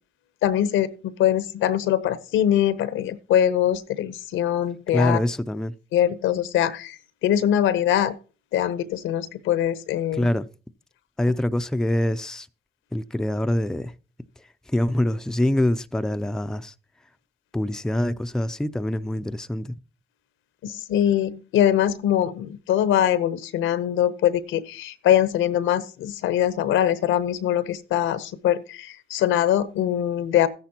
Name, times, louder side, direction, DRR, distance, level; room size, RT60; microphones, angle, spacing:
voice 1, 0.4-5.2 5.9-8.1 8.5-10.3 20.6-30.5, left 11 dB, 85° left, 0.9 m, -23 dB
voice 2, 4.9-5.7 10.1-10.5 11.2-12.5 12.9-14.0 14.4-16.7 17.5-19.8, left 1 dB, 5° left, 0.4 m, -25 dB
13.5 x 10.0 x 2.9 m
cardioid pair, 90°, 20 cm